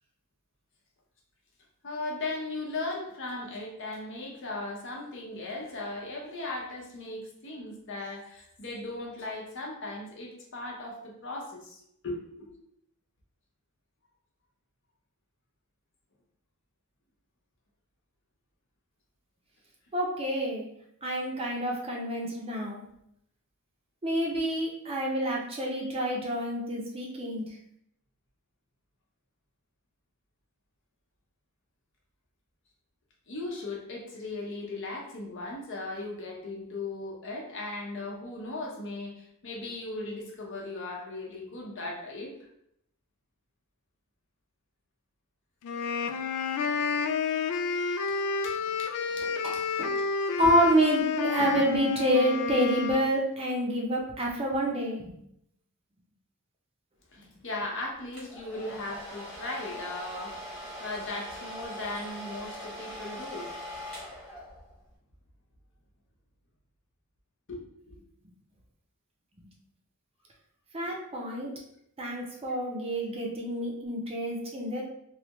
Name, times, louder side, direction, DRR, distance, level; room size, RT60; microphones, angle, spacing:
voice 1, 1.8-12.5 33.3-42.3 48.4-49.3 49.5-49.6 50.4-50.5 57.1-63.5 67.5-68.0 71.3-71.4 73.3-73.4, left 2 dB, 60° left, -1 dB, 0.8 m, -38 dB
voice 2, 19.9-20.6 21.0-22.8 24.0-27.4 49.4-49.9 50.4-55.2 70.7-71.5 72.0-74.8, equal, 25° right, -1 dB, 0.6 m, -28 dB
sound 1, 45.6-53.1, left 5 dB, 80° left, 0.3 m, -30 dB
Domestic sounds home sounds, 58.1-64.8, equal, 5° left, 0.9 m, -41 dB
3.2 x 2.3 x 2.9 m, 0.74 s
head